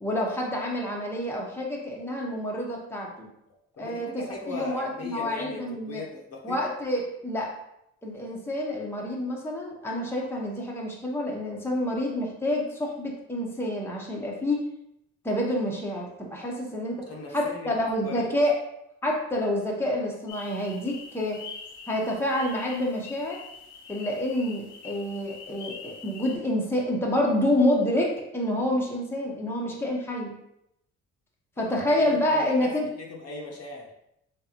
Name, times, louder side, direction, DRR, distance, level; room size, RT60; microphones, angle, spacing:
voice 1, 0.0-3.3 3.8-6.0 6.4-7.5 8.0-14.6 15.2-17.0 17.3-18.5 19.0-21.4 21.9-23.4 23.9-30.3 31.6-32.9, left 1 dB, 10° left, -2 dB, 0.9 m, -28 dB
voice 2, 3.5-6.6 17.1-17.7 18.0-18.4 31.6-33.9, left 3 dB, 55° left, -1 dB, 0.9 m, -39 dB
sound 1, 20.3-26.4, left 5 dB, 85° left, 0.8 m, -44 dB
3.7 x 3.3 x 2.9 m, 0.79 s
cardioid pair, 90°, 30 cm